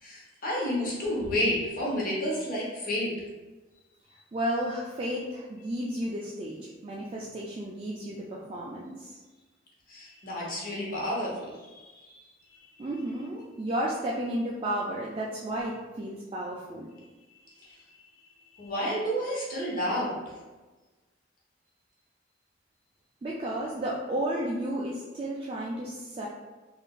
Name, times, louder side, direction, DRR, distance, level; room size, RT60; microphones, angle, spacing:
voice 1, 0.0-3.1 9.9-12.9 17.6-17.8 18.5-20.2, equal, 50° left, -5 dB, 1.0 m, -31 dB
voice 2, 4.3-9.2 12.8-16.9 23.2-26.3, right 1 dB, 30° right, -4 dB, 0.3 m, -33 dB
4.7 x 2.5 x 2.3 m, 1.2 s
head